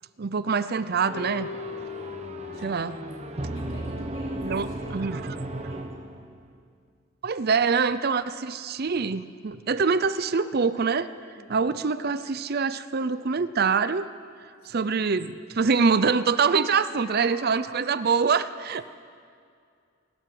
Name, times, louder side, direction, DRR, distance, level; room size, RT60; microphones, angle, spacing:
voice 1, 0.2-1.5 2.6-2.9 4.4-4.6 4.9-5.2 7.2-11.1 11.5-14.1 14.7-18.8, right 5 dB, 45° right, 14 dB, 0.5 m, -24 dB
sound 1, 1.0-6.6, right 1 dB, 30° right, 1.0 m, -35 dB
Keyboard (musical), 1.1-4.4, left 5 dB, 85° left, 2.6 m, -40 dB
voice 2, 1.9-6.0 11.3-11.9 14.6-15.0 17.0-17.9 18.7-18.8, left 1 dB, 60° left, -4 dB, 5.7 m, -49 dB
27.5 x 12.0 x 7.8 m, 2.3 s
head